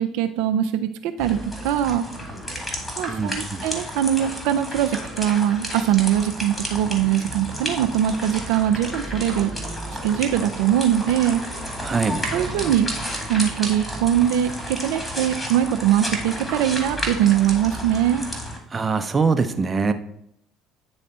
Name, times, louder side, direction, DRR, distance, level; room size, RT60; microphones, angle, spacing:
voice 1, 0.0-2.1 3.0-9.5 10.0-11.4 12.3-12.9 13.3-18.3, right 11 dB, 75° right, 7 dB, 0.4 m, -22 dB
sound 1, 1.2-18.6, equal, 15° left, 1.9 m, -32 dB
voice 2, 3.1-3.6 11.8-12.2 18.7-19.9, right 4 dB, 25° right, 8 dB, 0.7 m, -23 dB
9.4 x 3.2 x 4.2 m, 0.72 s
hypercardioid pair, 70°, 0 cm